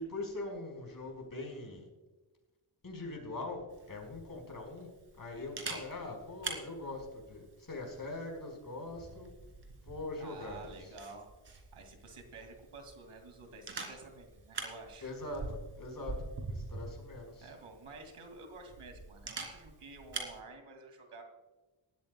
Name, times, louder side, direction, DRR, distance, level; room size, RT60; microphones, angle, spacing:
voice 1, 0.0-1.9 2.8-4.9 5.2-9.3 9.9-10.7 15.0-16.2 16.5-17.5, left 2 dB, 40° left, 1 dB, 4.8 m, -42 dB
Camera, 3.7-20.4, right 3 dB, 55° right, 3.0 m, -46 dB
voice 2, 10.2-15.1 17.4-21.2, right 3 dB, 80° right, 5 dB, 2.5 m, -51 dB
20.0 x 13.0 x 2.3 m, 1.2 s
wide cardioid pair, 100°, 50 cm